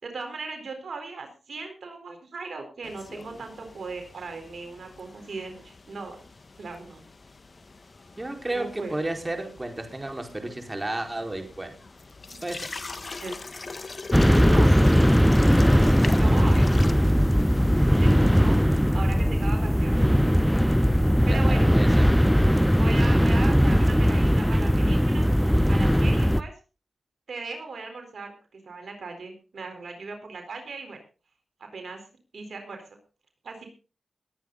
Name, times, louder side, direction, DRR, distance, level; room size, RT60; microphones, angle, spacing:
voice 1, 0.0-6.2 6.6-7.0 8.5-8.9 12.3-12.4 13.2-13.4 14.4-15.0 16.2-16.7 17.9-18.6 18.9-20.0 21.2-21.7 22.8-25.3 25.7-26.5 27.3-31.0 31.7-32.1 32.3-32.8 33.4-33.6, right 4 dB, 75° right, 5 dB, 4.2 m, -38 dB
sound 1, 2.8-18.6, left 3 dB, 50° left, 1.6 m, -39 dB
voice 2, 8.2-11.7 12.4-12.7 21.3-22.0, right 2 dB, 25° right, 4 dB, 4.8 m, -32 dB
sound 2, 14.1-26.4, equal, ahead, 0.8 m, -19 dB
21.5 x 9.0 x 4.0 m, 0.33 s
cardioid pair, 45°, 0 cm